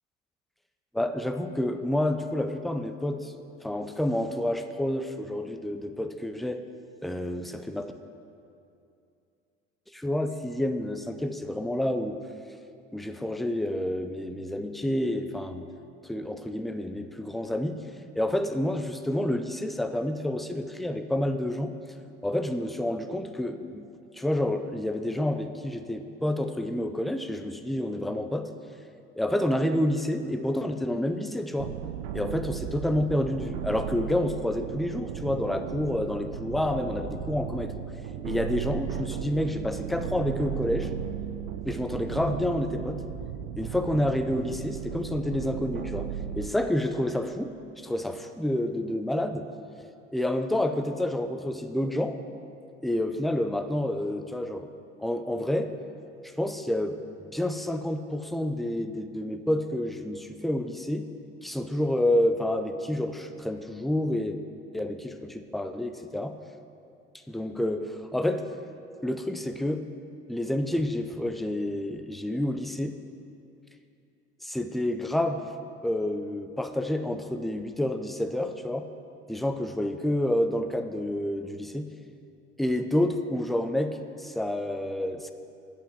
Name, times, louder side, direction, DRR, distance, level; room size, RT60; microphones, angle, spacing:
voice 1, 0.9-3.3 3.6-6.6 7.0-7.9 9.9-12.2 12.9-15.7 16.0-17.8 18.2-21.7 22.2-23.9 24.1-28.5 29.2-31.7 32.1-37.7 38.2-40.9 41.6-43.0 43.6-46.1 46.4-49.5 50.1-52.2 52.8-54.7 55.0-55.7 56.2-57.0 57.3-61.1 61.4-64.4 64.7-66.4 67.3-68.5 69.0-69.9 70.3-73.0 74.4-75.5 75.8-78.9 79.3-81.9 82.6-85.3, left 1 dB, ahead, 8 dB, 0.4 m, -29 dB
sound 1, 31.6-46.5, right 9 dB, 60° right, 0.8 m, -35 dB
8.6 x 5.6 x 7.6 m, 2.6 s
hypercardioid pair, 70°, 37 cm